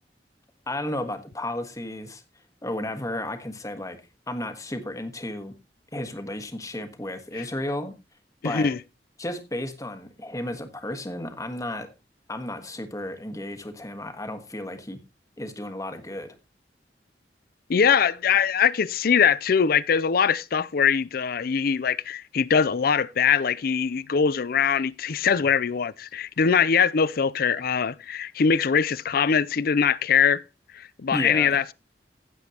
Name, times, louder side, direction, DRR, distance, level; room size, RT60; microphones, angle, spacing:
voice 1, 0.7-2.2 2.6-4.0 4.3-5.5 5.9-7.9 8.4-8.7 9.2-11.9 12.3-15.0 15.4-16.3 31.1-31.6, left 1 dB, 20° left, 1.5 m, -33 dB
voice 2, 8.4-8.8 17.7-30.4 30.7-31.7, left 6 dB, 60° left, 0.5 m, -22 dB
16.0 x 7.2 x 2.9 m
head